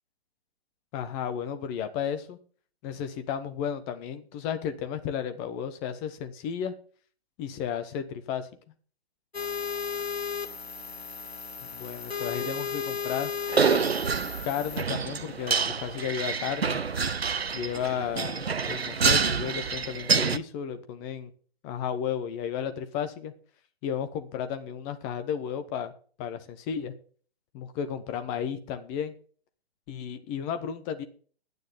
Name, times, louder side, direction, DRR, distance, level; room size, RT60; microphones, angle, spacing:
voice 1, 0.9-2.4 2.8-6.7 7.4-8.5 11.7-13.3 14.4-16.9 17.5-21.3 21.6-23.3 23.8-25.9 26.2-26.9 27.5-29.1 29.9-31.0, left 8 dB, 20° left, 9 dB, 1.0 m, -33 dB
sound 1, 9.3-14.8, left 6 dB, 80° left, 1.6 m, -34 dB
sound 2, 13.5-20.4, right 5 dB, 75° right, 0.8 m, -27 dB
10.5 x 9.4 x 5.6 m, 0.44 s
figure-of-eight pair, 130°, 31 cm